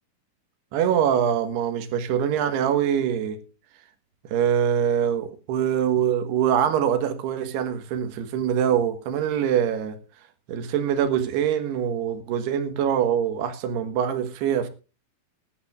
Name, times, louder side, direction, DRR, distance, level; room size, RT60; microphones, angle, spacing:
voice 1, 0.7-3.4 4.2-10.0 10.5-14.7, right 9 dB, 85° right, 3.4 m, -24 dB
20.5 x 11.5 x 2.4 m
omnidirectional pair, 4.6 m